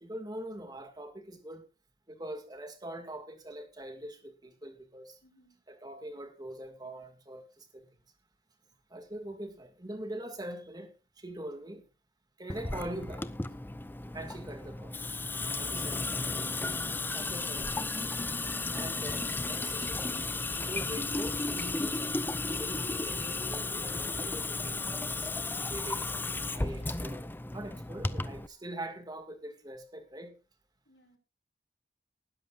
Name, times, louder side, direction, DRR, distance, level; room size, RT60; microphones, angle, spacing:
voice 1, 0.0-1.6 2.1-5.2 5.7-7.9 8.9-11.9 12.4-13.3 14.1-15.0 15.6-16.3 17.1-17.8 18.7-20.1 20.5-24.8 25.6-26.3 26.5-30.3, right 1 dB, 20° right, 2.1 m, -43 dB
voice 2, 5.2-5.6 30.8-31.2, left 1 dB, 70° left, 7.7 m, -63 dB
Water tap faucet / Sink (filling or washing) / Drip, 12.5-28.5, left 3 dB, 10° left, 0.5 m, -34 dB
Chirp tweet, 19.4-27.0, left 1 dB, 40° left, 8.0 m, -50 dB
19.5 x 11.0 x 2.5 m
head